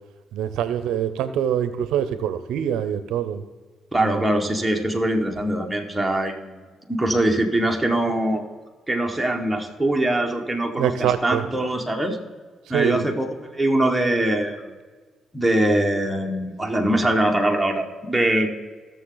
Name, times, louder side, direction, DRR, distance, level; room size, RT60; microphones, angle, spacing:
voice 1, 0.3-3.4 4.0-4.2 10.8-11.4 12.7-13.0, right 9 dB, 85° right, 12 dB, 0.6 m, -24 dB
voice 2, 3.9-6.6 6.9-8.4 8.9-12.2 12.7-14.6 15.3-18.5, right 1 dB, 5° right, 1 dB, 1.4 m, -22 dB
16.5 x 6.8 x 3.9 m, 1.4 s
cardioid pair, 90°, 0 cm